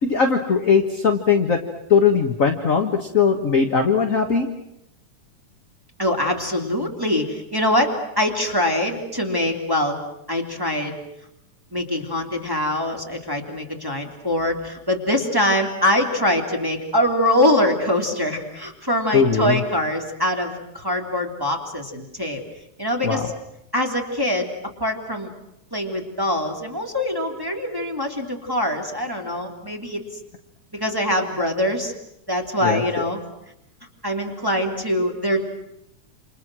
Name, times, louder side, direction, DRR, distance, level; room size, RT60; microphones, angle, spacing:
voice 1, 0.0-1.6 1.9-4.5 19.1-19.6 23.0-23.2 32.6-33.0, left 5 dB, 40° left, 3 dB, 1.2 m, -19 dB
voice 2, 6.0-10.0 10.3-10.9 11.7-22.4 22.8-23.3 23.7-24.5 24.8-25.3 25.7-30.0 30.7-31.9 32.3-33.2 34.0-35.4, left 1 dB, 5° right, 0 dB, 2.9 m, -23 dB
29.0 x 27.5 x 6.3 m, 0.81 s
omnidirectional pair, 3.7 m